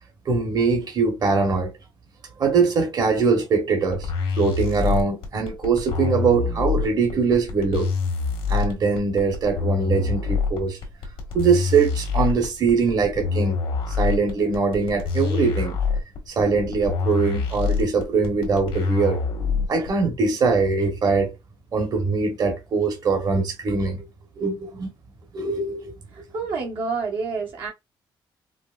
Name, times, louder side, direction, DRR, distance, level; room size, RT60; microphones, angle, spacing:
voice 1, 0.3-1.7 2.4-4.1 4.4-7.9 8.5-10.8 11.3-13.6 14.0-15.8 16.3-19.2 19.7-21.3 21.7-24.1 24.4-24.9 25.3-25.9, right 4 dB, 50° right, 1.0 m, -22 dB
sound 1, 3.9-19.9, left 5 dB, 90° left, 1.3 m, -25 dB
voice 2, 26.1-27.7, right 4 dB, 80° right, 1.2 m, -28 dB
4.6 x 2.0 x 2.4 m
cardioid pair, 105°, 9 cm